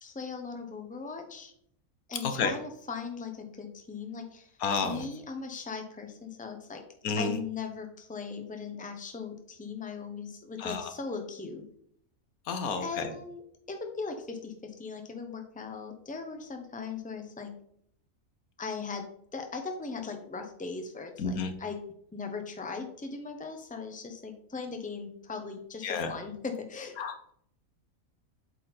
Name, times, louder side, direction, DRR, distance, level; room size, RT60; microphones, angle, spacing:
voice 1, 0.0-1.5 2.1-6.8 7.2-11.6 12.7-13.4 13.7-17.5 18.6-19.0 19.3-21.8 22.1-27.0, left 5 dB, 10° left, 5 dB, 0.7 m, -39 dB
voice 2, 4.6-5.0 7.0-7.4 10.6-10.9 12.5-13.1 21.2-21.5 25.8-26.1 27.0-27.3, left 5 dB, 90° left, 8 dB, 1.3 m, -30 dB
7.9 x 4.2 x 4.3 m, 0.67 s
omnidirectional pair, 1.5 m